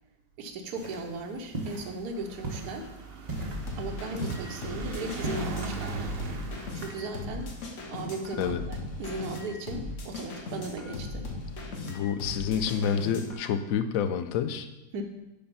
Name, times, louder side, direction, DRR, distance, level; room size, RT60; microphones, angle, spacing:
voice 1, 0.4-2.9 3.8-6.1 6.7-7.5 7.9-11.3 14.9-15.0, right 2 dB, 65° right, 3 dB, 1.3 m, -37 dB
sound 1, 0.7-5.7, right 3 dB, 30° right, 1.0 m, -39 dB
sound 2, 2.0-10.5 11.4-11.5 11.7-11.8 12.0-12.1, right 4 dB, 50° right, 0.7 m, -41 dB
sound 3, 3.4-13.5, left 2 dB, 50° left, 1.1 m, -38 dB
voice 2, 11.9-14.7, left 7 dB, 70° left, 8 dB, 0.8 m, -28 dB
7.0 x 4.3 x 5.5 m, 0.95 s
omnidirectional pair, 1.9 m